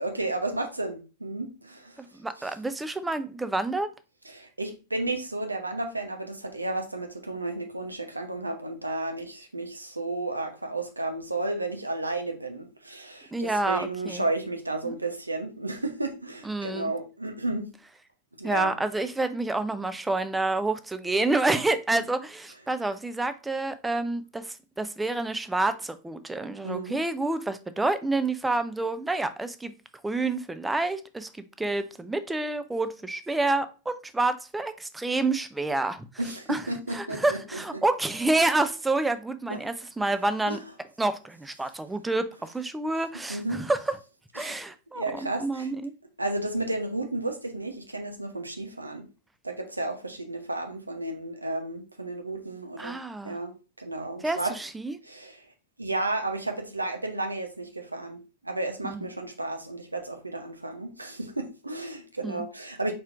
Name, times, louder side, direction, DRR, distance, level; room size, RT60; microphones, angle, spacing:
voice 1, 0.0-2.0 2.4-2.6 4.2-17.7 18.4-18.7 26.6-27.0 36.2-37.8 39.5-39.6 40.5-40.6 43.3-43.6 44.4-44.6 44.9-45.7 46.2-49.1 49.4-53.0 53.2-53.5 53.8-54.6 55.0-55.5 55.8-62.9, right 2 dB, 85° right, 0.7 m, -32 dB
voice 2, 2.0-3.9 13.3-14.3 14.8-14.9 16.5-16.9 18.4-29.7 30.0-31.3 31.6-36.1 36.5-36.6 36.9-40.6 41.0-44.0 44.3-45.9 52.8-53.4 54.2-55.0 58.8-59.0 62.2-62.4, right 2 dB, 10° right, 0.4 m, -28 dB
4.7 x 4.2 x 2.4 m
figure-of-eight pair, 90°, 0 cm